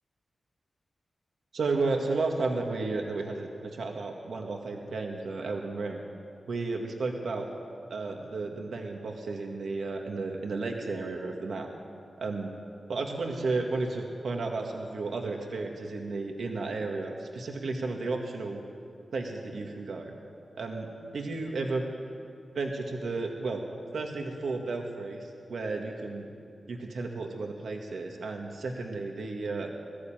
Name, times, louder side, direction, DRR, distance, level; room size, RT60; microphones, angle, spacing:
voice 1, 1.5-6.0 6.5-7.5 7.9-11.7 12.2-12.5 12.9-18.6 19.1-20.1 20.5-21.8 22.5-23.6 23.9-26.3 26.7-29.7, right 3 dB, 80° right, 2 dB, 2.0 m, -33 dB
20.5 x 14.5 x 9.1 m, 2.5 s
wide cardioid pair, 95°, 0 cm